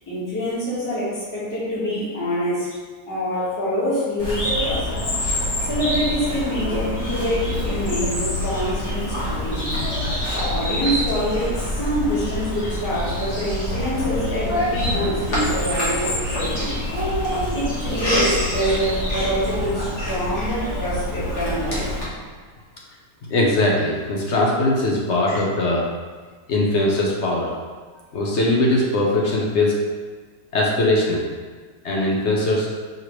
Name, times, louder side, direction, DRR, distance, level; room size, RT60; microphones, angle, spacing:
voice 1, 0.1-2.7 3.1-4.9 5.6-9.7 10.3-16.8 17.5-21.9 25.3-25.4, equal, 10° left, -9 dB, 1.1 m, -26 dB
Bird vocalization bird call bird song, 4.2-22.0, left 1 dB, 45° left, 1.4 m, -25 dB
voice 2, 23.3-25.9 26.5-27.5 28.1-29.7 30.5-31.3 31.8-32.7, left 1 dB, 65° left, -3 dB, 0.7 m, -20 dB
4.9 x 3.0 x 3.0 m, 1.5 s
omnidirectional pair, 1.9 m